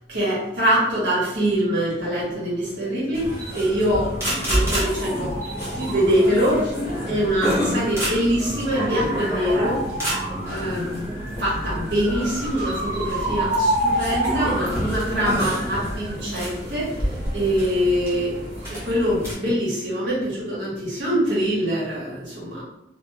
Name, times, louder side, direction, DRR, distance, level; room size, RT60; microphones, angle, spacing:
voice 1, 0.1-6.7 7.1-9.8 10.4-22.6, equal, 70° right, -7 dB, 1.3 m, -24 dB
sound 1, 3.1-19.3, equal, 15° right, 0.8 m, -27 dB
2.8 x 2.4 x 2.3 m, 0.89 s
head